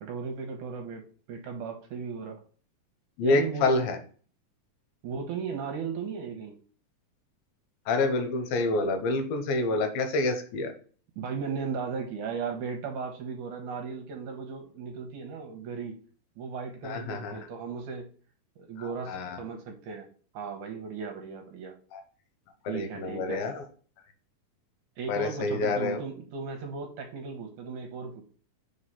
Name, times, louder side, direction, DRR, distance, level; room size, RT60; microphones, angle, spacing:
voice 1, 0.0-2.4 3.2-3.7 5.0-6.6 11.2-16.0 16.4-18.1 18.6-20.1 20.3-21.8 22.7-23.5 25.0-28.3, right 5 dB, 70° right, 3 dB, 2.1 m, -36 dB
voice 2, 3.2-4.0 7.9-10.7 16.8-17.4 19.1-19.4 21.9-22.0 22.7-23.6 25.1-26.0, left 2 dB, 75° left, 6 dB, 2.7 m, -27 dB
5.1 x 4.8 x 5.6 m, 0.42 s
omnidirectional pair, 4.3 m